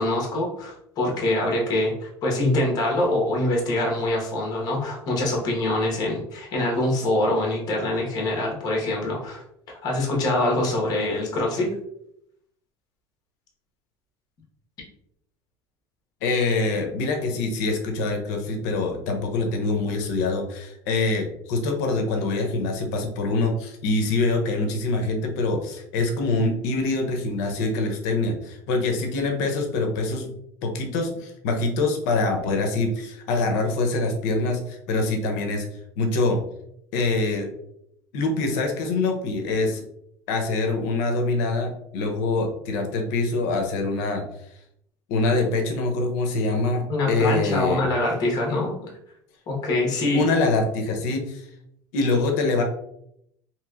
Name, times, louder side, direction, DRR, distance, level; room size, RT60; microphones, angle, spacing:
voice 1, 0.0-11.7 46.9-48.9 49.5-50.3, left 1 dB, 50° left, -1 dB, 1.1 m, -24 dB
voice 2, 16.2-30.3 30.6-35.7 36.0-36.4 36.9-37.5 38.1-39.8 40.3-44.2 45.1-47.8 50.1-51.5 51.9-52.6, left 3 dB, 80° left, 3 dB, 0.7 m, -24 dB
3.0 x 2.9 x 2.4 m, 0.75 s
supercardioid pair, 120°, 9 cm